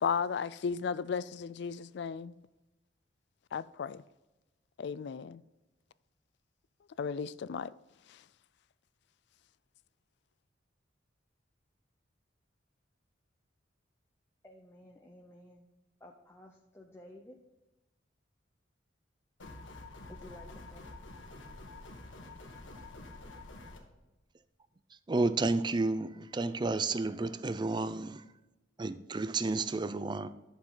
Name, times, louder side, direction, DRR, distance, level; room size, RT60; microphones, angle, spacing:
voice 1, 0.0-2.4 3.5-4.0 4.8-5.4 7.0-7.7, left 6 dB, 65° left, 0.4 m, -34 dB
voice 2, 14.4-15.7 16.0-17.4 20.1-20.9, left 1 dB, 15° left, 0.7 m, -53 dB
sound 1, 19.4-23.8, left 2 dB, 85° left, 1.6 m, -48 dB
voice 3, 25.1-28.2 28.8-30.3, right 3 dB, 25° right, 0.4 m, -31 dB
11.0 x 7.1 x 3.8 m
head